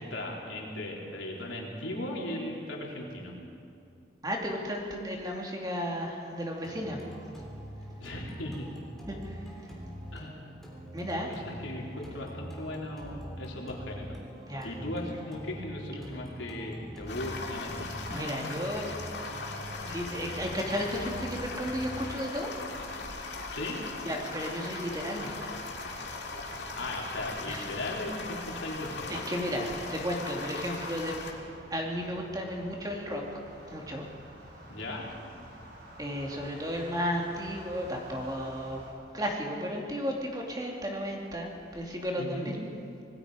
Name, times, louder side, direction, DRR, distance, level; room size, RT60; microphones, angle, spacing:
voice 1, 0.1-3.3 8.0-8.7 10.1-10.5 11.3-14.2 14.6-17.9 23.5-23.8 26.7-29.2 34.7-35.1 42.2-42.5, left 1 dB, 80° left, -2 dB, 3.9 m, -37 dB
voice 2, 4.2-7.0 9.1-9.5 10.9-11.6 14.5-14.7 18.1-18.9 19.7-22.5 24.0-25.4 27.4-27.7 29.1-31.2 31.7-33.2 33.7-34.0 36.0-38.8 39.1-42.6, equal, 20° right, 0 dB, 2.6 m, -34 dB
sound 1, 6.6-24.6, equal, ahead, 3.4 m, -44 dB
sound 2, 17.1-31.3, left 3 dB, 60° left, 2.4 m, -39 dB
sound 3, 24.7-38.9, right 1 dB, 60° right, 4.6 m, -51 dB
26.5 x 19.5 x 5.1 m, 2.5 s
head